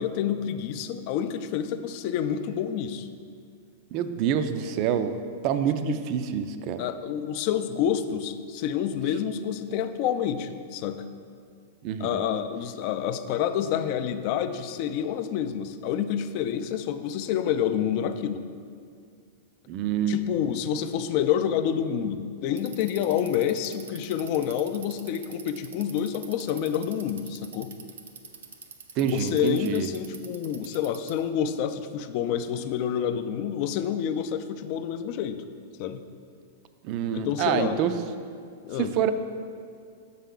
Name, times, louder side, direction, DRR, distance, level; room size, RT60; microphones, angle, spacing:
voice 1, 0.0-3.1 5.9-6.0 6.8-11.1 12.0-18.4 20.1-27.7 29.0-35.4 35.8-36.0 37.1-37.8 38.6-38.9, left 9 dB, 50° left, 10 dB, 0.4 m, -28 dB
voice 2, 3.9-5.2 5.4-6.8 11.8-12.2 19.7-20.2 29.0-29.9 36.8-37.9 38.8-39.1, right 8 dB, 45° right, 10 dB, 0.4 m, -26 dB
Bicycle, 22.5-31.3, right 6 dB, 90° right, 0.6 m, -44 dB
7.2 x 5.6 x 3.8 m, 2.2 s
hypercardioid pair, 135°, 0 cm